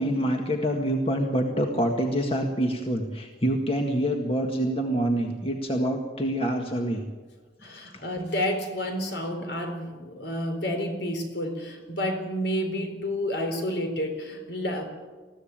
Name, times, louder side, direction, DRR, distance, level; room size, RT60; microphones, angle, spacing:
voice 1, 0.0-7.0, right 1 dB, 30° left, 2 dB, 1.8 m, -26 dB
voice 2, 7.6-14.8, equal, 65° left, 5 dB, 4.1 m, -30 dB
21.0 x 15.0 x 8.9 m, 1.3 s
head